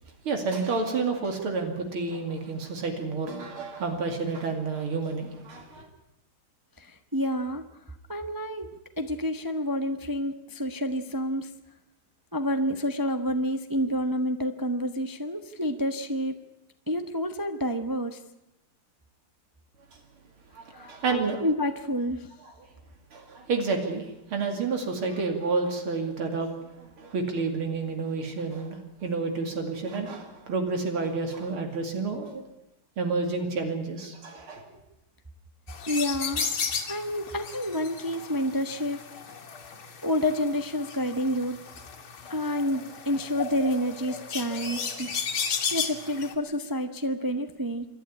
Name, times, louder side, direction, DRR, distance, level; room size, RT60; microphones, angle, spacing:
voice 1, 0.2-5.9 20.5-21.4 23.1-32.4 33.0-34.6, right 4 dB, 80° right, 4 dB, 3.3 m, -30 dB
voice 2, 6.8-7.6 8.1-8.7 9.0-11.5 12.3-16.4 16.9-18.2 20.7-22.3 35.9-36.5 36.9-39.0 40.0-41.6 42.3-47.9, equal, 20° right, 7 dB, 0.5 m, -29 dB
sound 1, 35.7-46.3, left 6 dB, 75° left, 2.8 m, -34 dB
27.0 x 11.5 x 9.8 m, 0.91 s
omnidirectional pair, 2.3 m